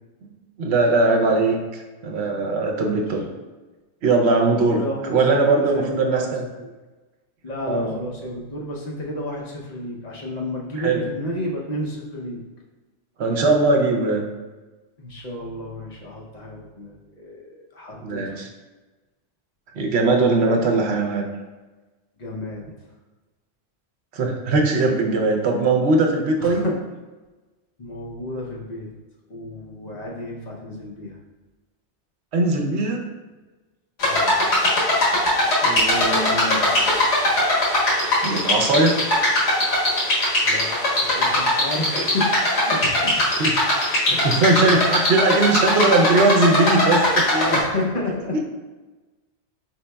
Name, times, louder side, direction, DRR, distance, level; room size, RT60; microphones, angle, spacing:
voice 1, 0.6-1.6 2.0-3.3 4.0-4.8 5.1-6.5 7.7-8.0 10.8-11.0 13.2-14.3 18.0-18.5 19.8-21.2 24.1-26.7 32.3-33.0 35.6-36.6 38.2-39.0 43.4-43.5 44.1-47.6, right 3 dB, 70° right, 2 dB, 0.9 m, -20 dB
voice 2, 4.7-5.1 5.4-6.3 6.6-6.7 7.4-12.4 15.0-18.4 22.2-22.6 26.4-26.7 27.8-28.9 29.3-31.2 34.0-34.3 40.4-40.7 41.0-42.3 42.5-43.2 47.5-48.4, left 1 dB, 40° left, -3 dB, 0.7 m, -31 dB
sound 1, 34.0-47.6, left 1 dB, 80° left, 1.5 m, -20 dB
4.6 x 4.0 x 2.2 m, 1.2 s
omnidirectional pair, 1.2 m